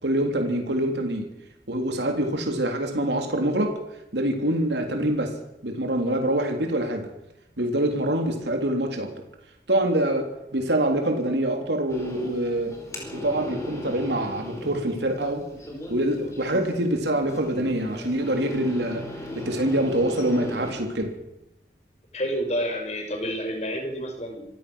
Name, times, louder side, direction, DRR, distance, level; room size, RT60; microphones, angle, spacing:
voice 1, 0.0-1.3 1.7-3.7 4.1-5.3 5.6-7.1 7.6-9.1 9.7-12.7 13.1-15.4 15.9-19.0 19.4-21.1, right 1 dB, 75° right, 3 dB, 3.5 m, -25 dB
sound 1, 11.9-20.7, left 1 dB, 15° left, 4.7 m, -37 dB
voice 2, 22.1-24.4, equal, 40° left, 4 dB, 5.4 m, -29 dB
26.5 x 16.0 x 6.4 m, 0.88 s
head